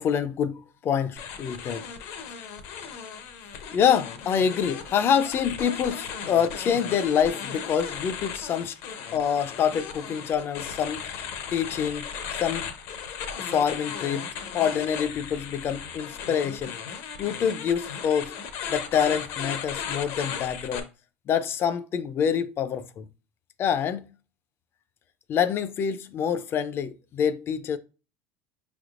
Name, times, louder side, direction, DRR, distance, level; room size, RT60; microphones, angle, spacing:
voice 1, 0.0-1.9 3.7-8.8 9.1-11.1 11.5-12.1 12.4-12.7 13.4-14.3 14.5-16.8 17.2-18.3 18.7-20.9 21.3-23.1 23.6-24.0 25.3-27.8, left 8 dB, 45° left, 0.5 m, -26 dB
sound 1, 1.2-20.8, left 7 dB, 70° left, 0.9 m, -36 dB
5.6 x 3.5 x 2.5 m
supercardioid pair, 95°, 6 cm